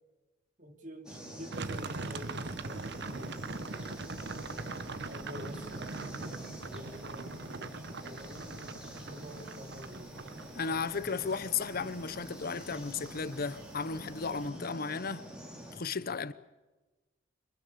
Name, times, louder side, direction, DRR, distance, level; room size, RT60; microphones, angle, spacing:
voice 1, 0.6-4.0 4.6-10.1, equal, 40° right, 3.1 m, -49 dB
sound 1, 1.0-15.8, right 1 dB, 5° right, 5.9 m, -46 dB
sound 2, 1.5-14.5, right 3 dB, 60° right, 1.2 m, -43 dB
voice 2, 10.5-15.3 15.7-16.3, left 5 dB, 50° left, 0.8 m, -34 dB
25.5 x 22.5 x 6.9 m
head